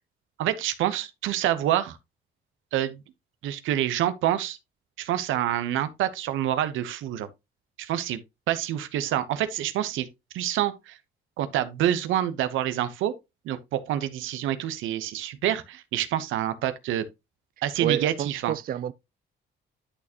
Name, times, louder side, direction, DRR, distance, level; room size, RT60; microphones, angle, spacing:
voice 1, 0.4-2.0 2.7-3.0 3.4-4.6 5.0-7.3 7.8-8.2 8.5-10.1 10.3-11.0 11.4-13.1 13.4-17.0 17.6-18.5, right 12 dB, 90° right, 0.8 m, -27 dB
voice 2, 17.8-18.9, right 11 dB, 45° right, 0.4 m, -29 dB
11.0 x 4.2 x 2.8 m
cardioid pair, 90°, 20 cm